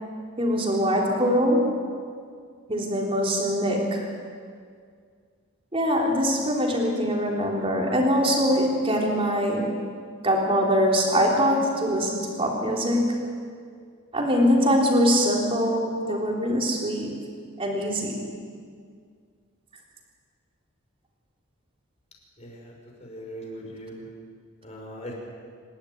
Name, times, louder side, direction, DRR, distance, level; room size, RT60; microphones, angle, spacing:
voice 1, 0.4-1.7 2.7-4.1 5.7-9.8 10.2-13.2 14.1-17.2 17.6-18.2, equal, 25° right, -1 dB, 3.5 m, -23 dB
voice 2, 22.4-22.7 23.0-24.1 24.6-25.1, equal, 30° left, -1 dB, 5.4 m, -40 dB
26.5 x 12.0 x 9.4 m, 2.1 s
head